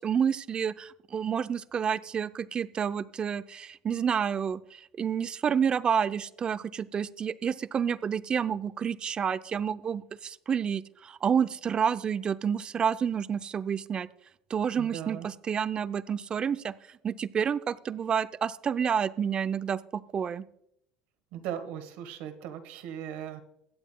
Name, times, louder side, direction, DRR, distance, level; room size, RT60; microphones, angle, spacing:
voice 1, 0.0-14.1 14.5-16.7 17.0-20.4, right 7 dB, 35° right, 14 dB, 0.5 m, -29 dB
voice 2, 14.8-15.3 21.3-23.4, right 10 dB, 70° right, 7 dB, 1.7 m, -38 dB
23.5 x 8.0 x 2.3 m, 0.73 s
supercardioid pair, 90°, 3 cm